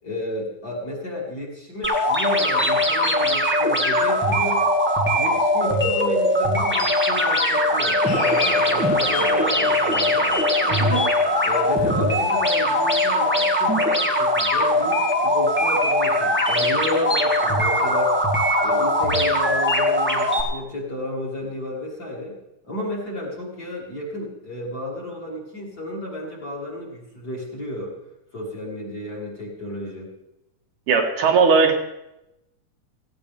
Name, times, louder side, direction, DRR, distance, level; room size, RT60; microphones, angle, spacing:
voice 1, 0.0-4.7 5.1-10.3 10.6-11.1 11.4-18.2 18.6-22.4 22.6-27.9 28.3-30.1, left 1 dB, 30° left, -4 dB, 3.6 m, -32 dB
sound 1, 1.8-20.4, left 1 dB, 5° right, 1.1 m, -20 dB
Cheering, 8.1-12.8, left 4 dB, 75° left, 4.0 m, -32 dB
voice 2, 30.9-31.8, right 5 dB, 75° right, 1 dB, 3.2 m, -17 dB
17.5 x 16.5 x 3.5 m, 0.90 s
omnidirectional pair, 3.6 m